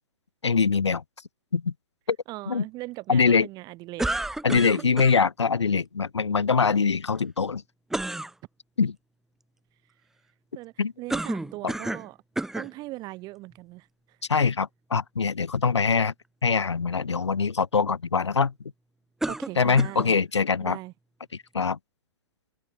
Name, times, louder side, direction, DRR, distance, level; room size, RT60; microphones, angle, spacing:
voice 1, 0.4-1.0 1.5-1.7 2.1-2.2 2.5-2.6 3.1-3.5 4.4-7.6 8.8-8.9 10.8-10.9 11.6-11.7 14.3-16.1 16.4-18.5 19.6-20.8 21.5-21.8, left 5 dB, 75° left, 0.6 m, -23 dB
voice 2, 2.3-4.1 4.5-4.9 10.5-12.2 12.5-13.9 14.4-14.5 19.3-20.1 20.6-20.9, right 20 dB, 30° right, 5.1 m, -39 dB
sound 1, 4.0-5.2 7.9-8.3 11.1-12.1 12.4-12.7 13.5-13.6 19.2-20.1, right 2 dB, 5° right, 0.7 m, -30 dB
figure-of-eight pair, 115°, 15 cm